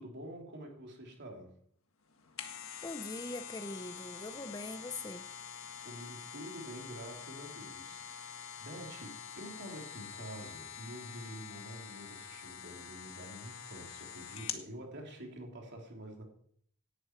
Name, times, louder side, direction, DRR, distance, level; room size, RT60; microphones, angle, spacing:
voice 1, 0.0-1.5 5.8-16.2, right 1 dB, 55° right, 3.5 m, -47 dB
sound 1, 2.1-14.7 15.1-15.2, left 8 dB, 65° left, 1.7 m, -46 dB
voice 2, 2.8-5.3, left 2 dB, 20° left, 0.7 m, -42 dB
18.0 x 11.0 x 4.7 m
head